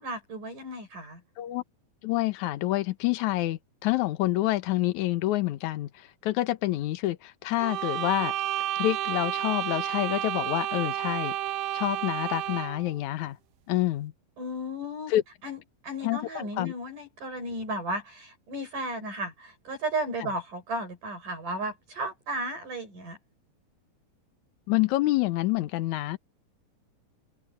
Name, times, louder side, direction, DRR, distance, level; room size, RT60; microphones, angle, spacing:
voice 1, 0.0-1.2 14.4-15.1 15.4-23.2, right 1 dB, 55° right, 8.2 m, -34 dB
voice 2, 2.0-8.3 8.8-11.4 11.7-13.4 13.7-14.1 15.1-15.2 16.0-16.7 24.7-26.2, left 16 dB, 65° left, 2.0 m, -27 dB
sound 1, 7.6-12.9, right 13 dB, 90° right, 3.1 m, -31 dB
open air
omnidirectional pair, 4.4 m